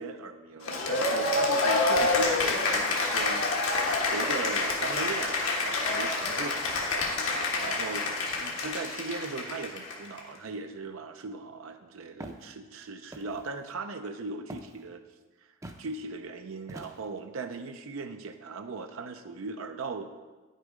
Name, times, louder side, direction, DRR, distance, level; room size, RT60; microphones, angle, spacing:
voice 1, 0.0-3.4 4.1-7.3 7.6-8.1 8.4-15.0 15.8-20.1, right 3 dB, 70° right, 7 dB, 0.5 m, -38 dB
Cheering / Applause, 0.6-10.2, left 3 dB, 75° left, 1.4 m, -27 dB
Walk footsteps, 12.2-12.5 13.1-13.5 14.5-14.8 15.6-15.9 16.7-17.2, right 1 dB, 15° right, 0.5 m, -44 dB
10.0 x 6.6 x 4.9 m, 1.3 s
head